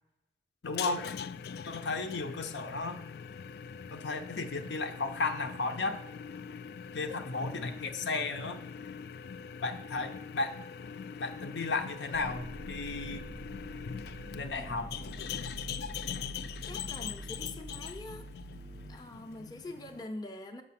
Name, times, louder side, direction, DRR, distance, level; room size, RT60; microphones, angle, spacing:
voice 1, 0.6-1.0 1.7-3.0 3.9-6.0 6.9-8.6 9.6-10.5 11.2-13.3 14.3-14.9, left 3 dB, 80° left, 6 dB, 0.7 m, -34 dB
sound 1, 0.6-20.0, left 7 dB, 60° left, 0.3 m, -42 dB
sound 2, 12.1-19.0, right 2 dB, 40° right, 0.4 m, -46 dB
voice 2, 16.7-18.2 18.9-20.6, left 2 dB, 25° left, 4 dB, 0.6 m, -44 dB
6.7 x 5.5 x 5.8 m, 0.90 s
head